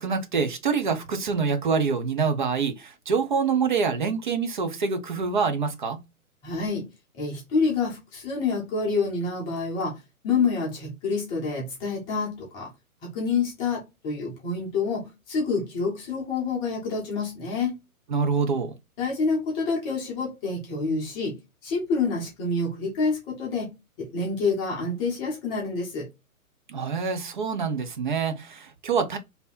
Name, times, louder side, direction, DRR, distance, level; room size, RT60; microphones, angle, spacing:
voice 1, 0.0-6.0 18.1-18.7 26.7-29.2, right 5 dB, 35° right, 0.6 m, -26 dB
voice 2, 6.4-6.9 7.1-10.0 10.2-12.7 13.0-17.8 19.0-21.4 21.6-23.7 24.0-26.1, left 4 dB, 10° left, 0.7 m, -27 dB
3.4 x 2.8 x 4.0 m
figure-of-eight pair, 125°, 44 cm